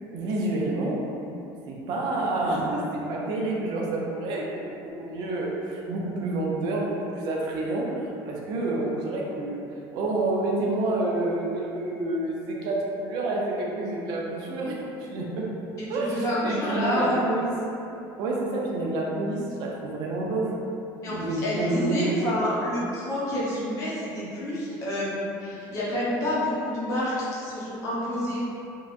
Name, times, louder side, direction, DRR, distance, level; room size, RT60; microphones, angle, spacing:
voice 1, 0.1-1.0 1.7-9.6 9.9-15.4 15.9-17.5 18.2-20.5 21.1-22.1, right 2 dB, 50° right, -3 dB, 0.4 m, -28 dB
voice 2, 15.8-17.2 21.0-28.4, left 1 dB, 35° left, -8 dB, 0.6 m, -28 dB
2.7 x 2.2 x 2.4 m, 2.9 s
cardioid pair, 170°, 9 cm